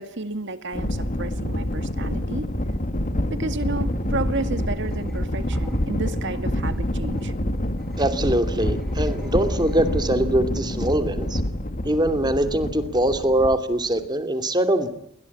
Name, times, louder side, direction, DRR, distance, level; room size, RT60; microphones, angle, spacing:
voice 1, 0.0-2.5 3.3-7.3, right 2 dB, 60° right, 11 dB, 2.1 m, -31 dB
sound 1, 0.7-14.1, left 1 dB, 40° left, 2.1 m, -27 dB
sound 2, 3.5-11.1, equal, ahead, 5.5 m, -39 dB
voice 2, 8.0-11.4 11.8-14.9, right 1 dB, 20° right, 8 dB, 2.6 m, -22 dB
29.5 x 21.5 x 8.5 m, 0.68 s
head